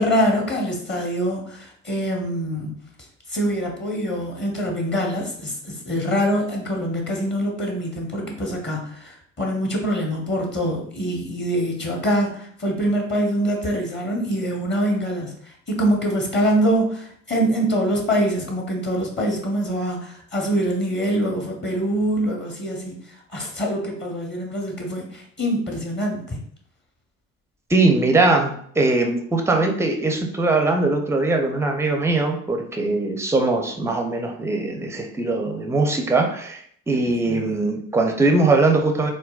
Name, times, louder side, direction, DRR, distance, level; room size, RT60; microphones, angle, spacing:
voice 1, 0.0-2.7 3.3-26.4 37.1-37.6, equal, 25° left, 0 dB, 0.9 m, -24 dB
voice 2, 27.7-39.1, right 3 dB, 5° right, 4 dB, 0.5 m, -21 dB
3.7 x 2.1 x 2.3 m, 0.62 s
hypercardioid pair, 55°, 43 cm